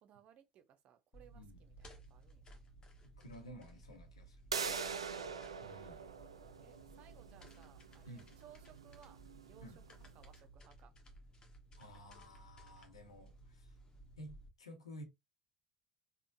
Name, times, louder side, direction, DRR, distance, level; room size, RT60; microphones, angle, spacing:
voice 1, 0.0-2.6 6.6-9.2 9.4-10.9, right 10 dB, 50° right, 0.6 m, -63 dB
sound 1, 1.1-14.5, right 1 dB, 30° left, 1.0 m, -58 dB
voice 2, 1.3-1.6 3.0-4.4 5.6-6.0 8.1-8.4 9.6-9.8 11.8-13.7 14.2-15.0, equal, 85° left, 0.9 m, -53 dB
sound 2, 4.5-10.1, right 5 dB, 85° right, 0.3 m, -44 dB
3.6 x 2.1 x 2.6 m
figure-of-eight pair, 70°, 3 cm